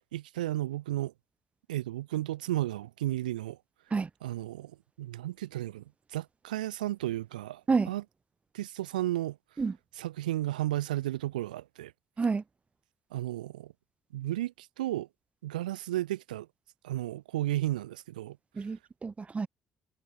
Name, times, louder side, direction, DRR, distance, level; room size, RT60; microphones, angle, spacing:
voice 1, 0.1-1.1 1.7-3.6 4.2-5.8 6.1-8.0 8.5-9.4 10.0-11.9 13.1-13.7 14.1-15.1 15.4-16.5 16.8-18.4, right 14 dB, 80° right, 1.4 m, -33 dB
voice 2, 18.6-19.5, right 4 dB, 30° right, 1.5 m, -29 dB
figure-of-eight pair, 50°, 4 cm